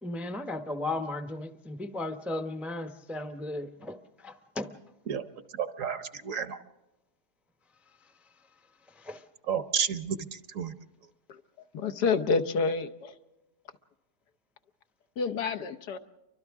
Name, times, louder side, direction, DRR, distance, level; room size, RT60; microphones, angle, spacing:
voice 1, 0.0-4.0 4.2-4.7 9.0-9.2, left 2 dB, ahead, 7 dB, 0.6 m, -35 dB
voice 2, 5.5-6.6 9.5-10.7, right 7 dB, 60° right, 11 dB, 1.1 m, -31 dB
voice 3, 11.7-13.1 15.2-16.0, left 4 dB, 80° left, 7 dB, 1.6 m, -28 dB
29.5 x 24.5 x 3.6 m, 1.0 s
omnidirectional pair, 1.7 m